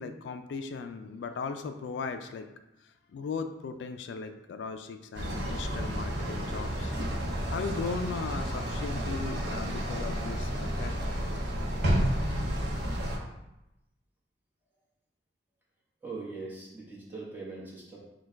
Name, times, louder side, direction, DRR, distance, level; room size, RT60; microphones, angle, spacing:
voice 1, 0.0-2.5 2.8-6.9 7.5-11.0 13.0-13.1, left 5 dB, 80° left, 8 dB, 0.3 m, -37 dB
sound 1, 5.1-13.2, equal, 70° right, 0.8 m, -31 dB
voice 2, 16.0-18.0, right 3 dB, 10° right, -6 dB, 1.1 m, -41 dB
4.3 x 2.2 x 4.4 m, 0.94 s
head